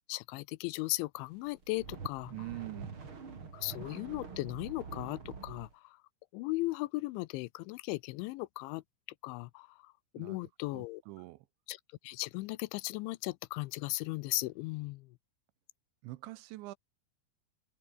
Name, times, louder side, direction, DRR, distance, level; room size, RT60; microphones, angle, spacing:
voice 1, 0.1-2.3 3.5-6.0 6.3-8.8 9.2-11.0 11.7-11.8 12.0-15.1, left 21 dB, 85° left, 3.0 m, -37 dB
sound 1, 1.5-5.7, right 5 dB, 30° right, 3.5 m, -45 dB
voice 2, 2.3-3.0 10.2-10.4 10.7-11.5 16.0-16.8, right 18 dB, 85° right, 3.1 m, -44 dB
omnidirectional pair, 5.4 m